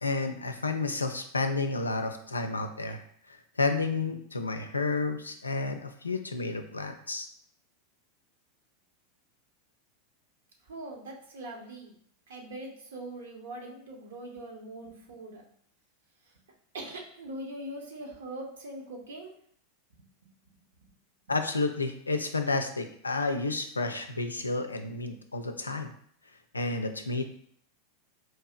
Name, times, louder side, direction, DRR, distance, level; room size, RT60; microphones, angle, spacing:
voice 1, 0.0-3.0 3.3-7.3 21.3-25.9 26.5-27.3, left 3 dB, 80° left, 7 dB, 0.4 m, -31 dB
voice 2, 10.6-11.9 12.3-15.4 16.2-16.4 16.7-19.3 19.9-20.6 24.4-24.5, right 1 dB, 65° right, 0 dB, 0.8 m, -42 dB
4.5 x 2.7 x 2.4 m, 0.63 s
figure-of-eight pair, 85°, 0 cm